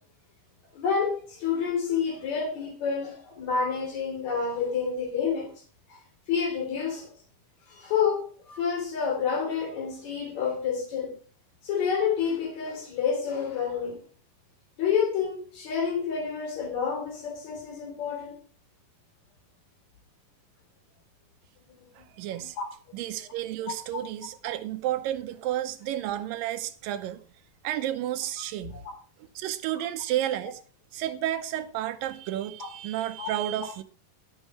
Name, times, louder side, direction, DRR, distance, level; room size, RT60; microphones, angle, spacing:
voice 1, 0.7-5.5 5.9-6.0 6.3-7.1 7.7-11.1 11.6-14.0 14.8-18.4 21.6-22.1 22.4-22.7 28.7-28.8 33.2-33.3, left 6 dB, 55° left, 4.2 m, -29 dB
voice 2, 22.0-22.6 22.9-27.2 27.6-28.8 29.4-30.6 30.9-33.8, right 12 dB, 80° right, 2.4 m, -31 dB
13.0 x 6.3 x 4.7 m
omnidirectional pair, 4.1 m